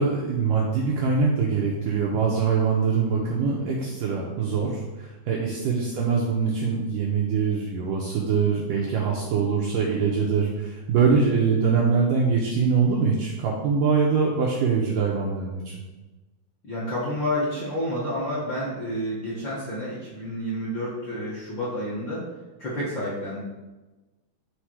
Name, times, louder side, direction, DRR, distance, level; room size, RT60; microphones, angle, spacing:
voice 1, 0.0-15.8, right 5 dB, 75° right, -3 dB, 2.0 m, -23 dB
voice 2, 16.6-22.2 22.6-23.4, equal, 45° left, -8 dB, 1.7 m, -29 dB
9.8 x 3.6 x 4.8 m, 1.1 s
omnidirectional pair, 4.8 m